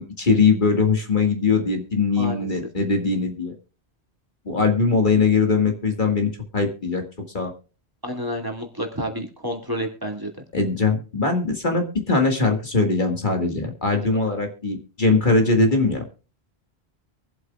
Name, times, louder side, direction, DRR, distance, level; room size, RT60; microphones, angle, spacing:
voice 1, 0.0-3.5 4.5-7.0 7.3-7.5 10.5-16.0, left 4 dB, 50° left, 4 dB, 2.0 m, -21 dB
voice 2, 2.2-2.5 8.0-10.3, equal, 20° right, 1 dB, 2.1 m, -29 dB
23.5 x 7.9 x 2.4 m, 0.35 s
omnidirectional pair, 1.1 m